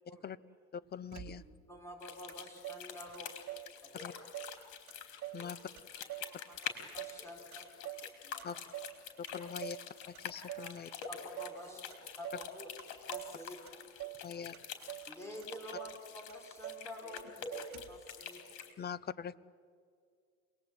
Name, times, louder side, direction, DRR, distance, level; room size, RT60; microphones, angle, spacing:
voice 1, 0.7-1.4 4.0-4.1 5.3-5.6 8.4-8.6 9.3-9.8 10.1-10.9 14.2-14.6 18.8-19.4, left 7 dB, 35° left, 17 dB, 0.8 m, -42 dB
Motor vehicle (road), 1.1-1.8 2.3-2.4 2.6-3.7 4.0-4.6 4.9-5.5 5.8-7.2 7.5-8.1 8.4-9.0 9.3-9.9 10.1-10.7 11.0-11.6 11.9-12.5 12.8-13.4 13.7-14.2 14.5-15.1 15.4-15.5 15.7-16.0 16.3-16.9 17.2-17.3 17.5-18.1, right 16 dB, 65° right, 1.5 m, -46 dB
voice 2, 1.7-3.3 3.8-4.1 6.9-7.7 8.0-8.6 11.1-11.8 12.2-12.5 13.1-13.6 15.1-17.2 17.5-18.4, equal, 10° left, 1 dB, 5.4 m, -49 dB
sound 1, 2.0-18.7, left 8 dB, 85° left, 4.2 m, -47 dB
voice 3, 5.4-6.6 7.2-7.5 8.3-8.4 9.1-9.2 9.4-9.5 10.5-11.1 11.6-12.1 12.5-12.7 14.0-14.8 17.0-17.7 18.2-18.9, right 2 dB, 10° right, -3 dB, 6.9 m, -59 dB
27.5 x 21.0 x 9.0 m, 2.2 s
cardioid pair, 120°, 30 cm